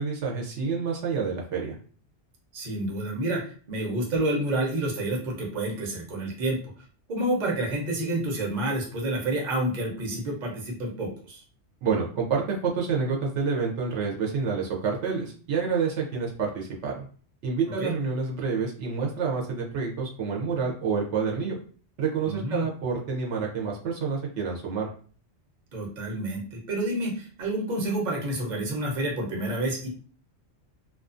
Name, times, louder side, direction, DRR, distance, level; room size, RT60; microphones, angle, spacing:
voice 1, 0.0-1.8 11.8-17.0 17.4-21.6 22.0-24.9, right 5 dB, 80° right, -1 dB, 0.9 m, -28 dB
voice 2, 2.5-6.6 7.1-11.4 17.8-17.9 22.2-22.7 25.7-29.9, right 1 dB, 45° right, -1 dB, 0.8 m, -29 dB
2.4 x 2.3 x 2.5 m, 0.42 s
omnidirectional pair, 1.2 m